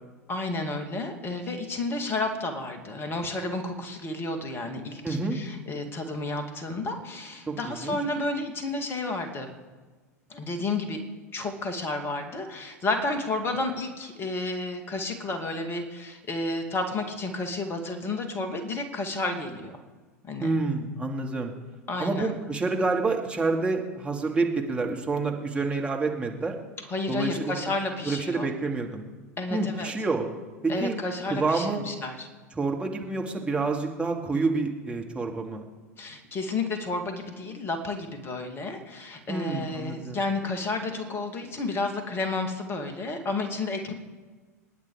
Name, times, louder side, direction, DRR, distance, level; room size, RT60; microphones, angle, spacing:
voice 1, 0.3-9.5 10.3-11.0 11.3-19.8 20.2-20.5 21.9-22.3 26.9-28.5 29.4-29.9 30.7-32.3 36.0-43.9, left 2 dB, 25° left, 6 dB, 2.5 m, -31 dB
voice 2, 5.0-5.4 7.5-8.0 20.4-21.5 22.0-26.5 27.1-27.7 28.0-29.0 29.5-30.3 30.6-31.0 31.3-31.8 32.6-35.6 39.3-40.2, right 3 dB, 10° right, 1 dB, 2.4 m, -28 dB
26.0 x 10.5 x 5.0 m, 1.3 s
figure-of-eight pair, 85°, 9 cm